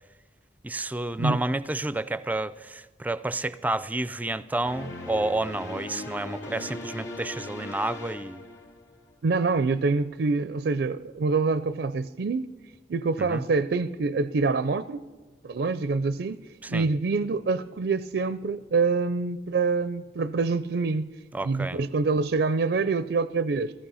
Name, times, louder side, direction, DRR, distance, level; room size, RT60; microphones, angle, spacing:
voice 1, 0.6-8.4 13.2-13.4 16.6-16.9 21.3-21.8, right 2 dB, 10° right, 0.4 m, -30 dB
sound 1, 4.6-9.1, left 2 dB, 85° left, 2.8 m, -39 dB
voice 2, 9.2-12.5 12.9-15.0 15.4-16.4 16.7-21.1 21.4-23.7, right 4 dB, 70° right, 0.4 m, -26 dB
15.5 x 14.5 x 5.5 m
head